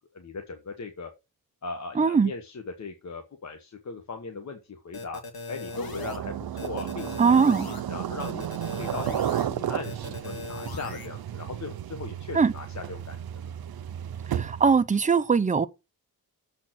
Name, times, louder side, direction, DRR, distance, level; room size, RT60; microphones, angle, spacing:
voice 1, 0.1-1.1 1.6-5.2 5.5-6.3 6.6-8.5 8.8-13.2, left 4 dB, 45° left, 1.1 m, -38 dB
voice 2, 2.0-2.3 7.2-7.7 12.3-12.5 14.3-15.7, right 5 dB, 20° right, 0.5 m, -21 dB
sound 1, 4.9-6.2 6.6-7.8 8.2-9.4 9.8-11.1, left 3 dB, 70° left, 2.0 m, -39 dB
sound 2, 5.7-14.8, right 10 dB, 75° right, 0.7 m, -33 dB
7.3 x 4.4 x 6.0 m
wide cardioid pair, 145°, 37 cm